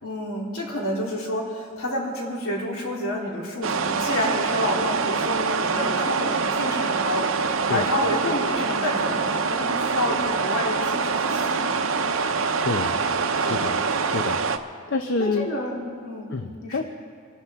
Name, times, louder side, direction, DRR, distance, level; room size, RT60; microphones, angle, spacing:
voice 1, 0.0-11.8 13.4-13.7 15.2-16.3 16.6-16.8, left 1 dB, 70° left, -3 dB, 3.2 m, -29 dB
sound 1, 3.6-14.6, right 4 dB, 70° right, 0.8 m, -25 dB
voice 2, 12.6-13.0 13.4-13.8 14.1-14.4 14.9-15.5 16.3-16.8, left 3 dB, 55° left, 6 dB, 0.7 m, -27 dB
26.0 x 11.5 x 3.6 m, 2.2 s
head